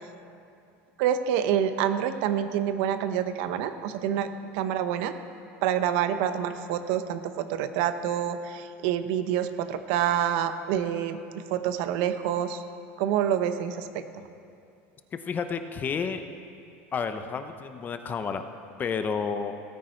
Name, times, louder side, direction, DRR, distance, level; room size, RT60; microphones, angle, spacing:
voice 1, 1.0-5.1 5.6-12.6 13.0-14.3, right 9 dB, 65° right, 10 dB, 0.8 m, -27 dB
voice 2, 15.1-16.2 16.9-18.5 18.8-19.5, left 6 dB, 25° left, 8 dB, 0.7 m, -30 dB
17.0 x 9.4 x 4.4 m, 2.5 s
supercardioid pair, 140°, 7 cm